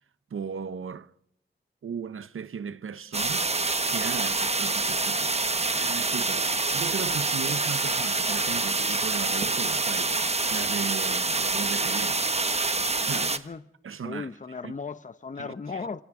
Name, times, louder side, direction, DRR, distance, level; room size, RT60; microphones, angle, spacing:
voice 1, 0.3-1.1 1.8-3.5 3.9-5.4 5.7-10.1 10.5-12.3 13.0-13.5 13.8-14.3 14.6-14.7 15.4-15.5, right 6 dB, 80° right, 0.7 m, -36 dB
sound 1, 3.1-13.4, right 3 dB, 30° right, 1.1 m, -26 dB
sound 2, 6.1-12.9, left 3 dB, 75° left, 7.0 m, -55 dB
voice 2, 13.3-13.6 14.0-16.0, left 4 dB, 35° left, 0.7 m, -36 dB
27.5 x 25.0 x 3.7 m
wide cardioid pair, 65°, 21 cm